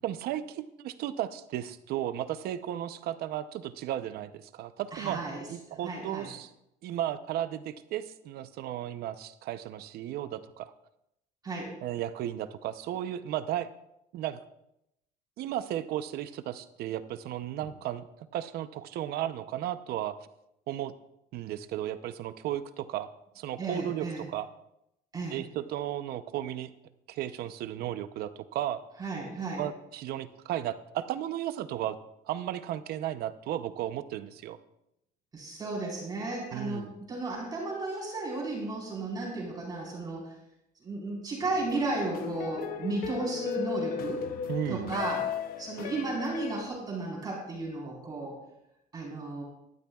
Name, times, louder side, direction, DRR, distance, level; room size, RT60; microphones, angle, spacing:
voice 1, 0.0-5.2 5.5-6.5 6.8-10.7 11.8-13.7 14.1-14.4 15.4-18.1 18.3-20.2 20.7-20.9 21.3-23.1 23.4-24.5 25.3-26.7 27.1-28.8 29.6-32.0 32.3-34.6 36.5-36.9 44.5-44.9, right 12 dB, 70° right, 12 dB, 0.7 m, -34 dB
voice 2, 4.9-6.3 11.4-11.7 23.6-24.2 25.1-25.4 29.0-29.6 35.3-40.3 40.8-44.3 44.7-45.2 45.6-48.4 48.9-49.4, right 3 dB, 25° right, -4 dB, 4.4 m, -34 dB
sound 1, 41.4-46.6, left 8 dB, 60° left, 0.7 m, -36 dB
18.5 x 12.0 x 2.4 m, 0.83 s
cardioid pair, 160°, 17 cm